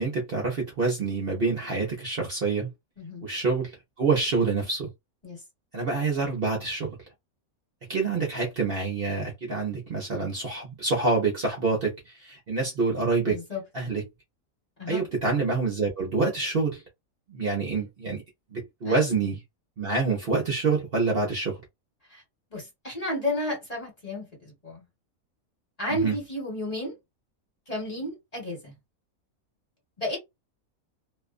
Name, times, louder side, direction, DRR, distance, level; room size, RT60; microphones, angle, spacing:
voice 1, 0.0-2.7 3.2-4.9 5.7-7.0 7.9-13.4 13.7-14.0 14.9-16.8 17.3-18.2 18.5-19.4 19.8-21.6 26.0-26.1, right 4 dB, 50° right, 0.9 m, -27 dB
voice 2, 13.2-13.6 14.8-15.0 18.8-18.9 22.1-22.2 22.5-24.8 25.8-26.9 27.7-28.7 30.0-30.2, left 1 dB, 30° left, 1.3 m, -32 dB
2.5 x 2.3 x 2.4 m
omnidirectional pair, 1.5 m